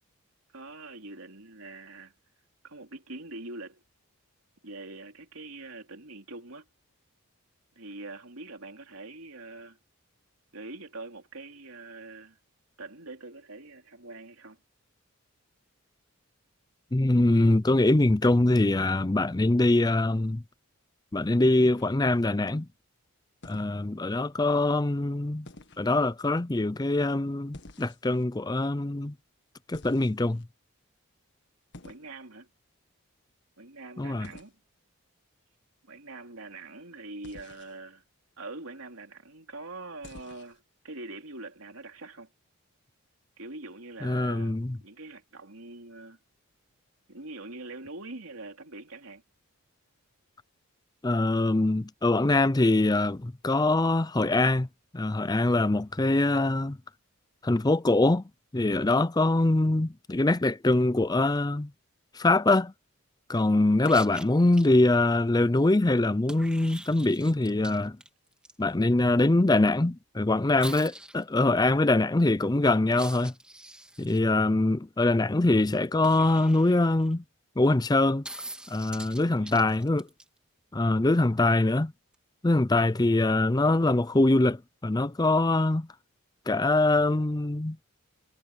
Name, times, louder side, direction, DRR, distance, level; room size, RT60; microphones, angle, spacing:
voice 1, 0.5-2.1 2.6-3.8 4.6-6.7 7.7-9.8 10.5-12.4 12.8-14.6 31.8-32.5 33.6-34.5 35.8-38.0 38.4-42.3 43.4-46.2 47.1-49.2 64.4-64.6 79.2-79.7, right 2 dB, 75° right, 3.2 m, -43 dB
voice 2, 16.9-20.4 21.1-22.7 23.4-25.5 25.8-29.1 29.7-30.4 34.0-34.3 44.0-44.8 51.0-54.7 54.9-56.8 57.4-58.2 58.5-61.7 62.1-62.7 63.3-68.0 68.6-73.3 74.0-77.2 77.6-78.2 78.7-80.1 80.7-81.9 82.4-85.9 86.5-87.8, left 2 dB, 20° left, 0.5 m, -23 dB
sound 1, 21.5-22.2 23.4-23.8 25.4-25.9 27.5-28.2 29.7-30.4 31.7-32.1 34.2-34.5 37.2-37.7 40.0-40.6, left 2 dB, 55° left, 1.7 m, -49 dB
sound 2, 63.8-64.7 66.3-68.5 70.6-71.2 72.9-74.2 76.0-77.1 78.2-80.2 82.1-82.2, right 1 dB, 5° right, 2.4 m, -44 dB
head